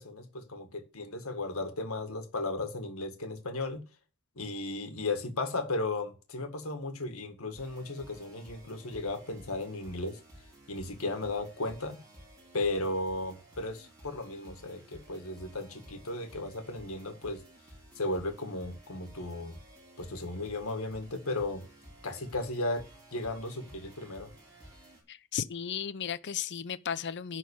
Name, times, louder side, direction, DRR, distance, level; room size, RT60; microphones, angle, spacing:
voice 1, 0.0-3.8 4.4-10.2 10.7-12.0 12.5-17.4 18.0-19.6 20.0-21.6 22.0-22.8 23.1-24.3, left 2 dB, 65° left, 1.8 m, -35 dB
sound 1, 7.5-25.0, right 1 dB, 15° right, 4.0 m, -54 dB
voice 2, 25.1-27.4, left 8 dB, 50° left, 0.6 m, -35 dB
11.0 x 4.1 x 7.1 m
head